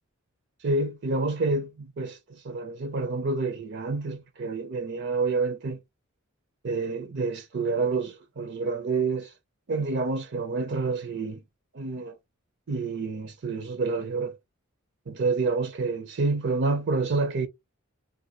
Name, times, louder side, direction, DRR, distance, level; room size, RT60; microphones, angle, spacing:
voice 1, 0.6-5.8 6.6-9.3 9.7-11.4 11.7-12.1 12.7-14.4 15.1-17.5, right 3 dB, 55° right, 0.5 m, -28 dB
2.6 x 2.2 x 4.0 m
head